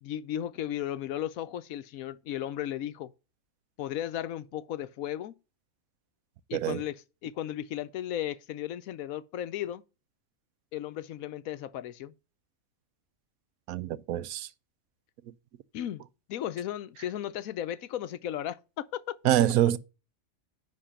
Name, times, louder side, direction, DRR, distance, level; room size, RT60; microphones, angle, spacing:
voice 1, 0.0-3.1 3.8-5.4 6.5-9.8 10.7-12.1 15.7-16.0 16.3-19.2, left 11 dB, 80° left, 1.1 m, -35 dB
voice 2, 6.5-6.8 13.7-14.5 19.2-19.8, right 12 dB, 80° right, 1.0 m, -25 dB
10.0 x 3.9 x 5.7 m
omnidirectional pair, 1.5 m